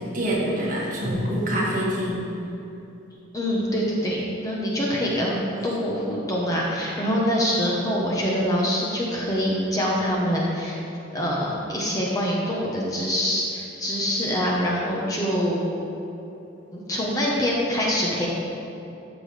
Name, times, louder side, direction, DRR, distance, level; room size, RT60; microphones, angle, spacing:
voice 1, 0.1-2.2, equal, 45° right, -6 dB, 1.9 m, -25 dB
voice 2, 3.3-10.8 11.1-15.7 16.7-18.3, equal, 20° left, -4 dB, 1.0 m, -25 dB
12.5 x 6.2 x 3.4 m, 2.9 s
head